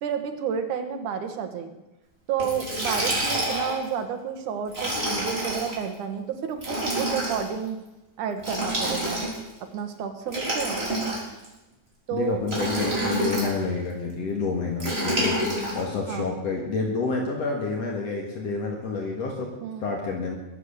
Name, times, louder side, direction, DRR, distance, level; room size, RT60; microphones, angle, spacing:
voice 1, 0.0-1.7 2.3-7.8 8.2-9.2 9.6-10.8 12.1-12.4 13.0-13.3 16.1-16.3 19.6-19.9, right 7 dB, 85° right, 7 dB, 2.8 m, -31 dB
Liquid, 2.4-3.8 4.7-5.7 6.6-7.5 8.4-9.5 10.3-11.5 12.4-13.5 14.8-15.8, right 1 dB, 20° right, 4.4 m, -27 dB
voice 2, 12.1-15.4 15.7-19.5 19.8-20.4, left 4 dB, 60° left, 0 dB, 2.8 m, -28 dB
22.0 x 8.1 x 6.5 m, 1.0 s
omnidirectional pair, 3.4 m